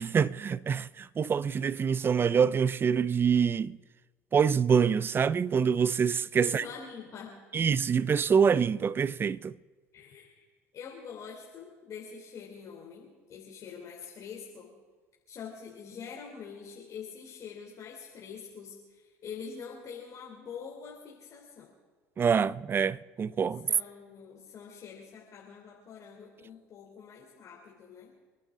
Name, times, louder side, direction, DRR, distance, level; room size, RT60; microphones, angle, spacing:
voice 1, 0.0-3.8 4.3-6.6 7.5-9.6 22.2-23.7, right 6 dB, 30° right, 0.6 m, -26 dB
voice 2, 6.4-7.6 9.9-10.4 10.7-14.7 15.3-21.7 23.7-28.1, left 6 dB, 50° left, 3.3 m, -45 dB
28.0 x 11.5 x 3.8 m
hypercardioid pair, 75°, 7 cm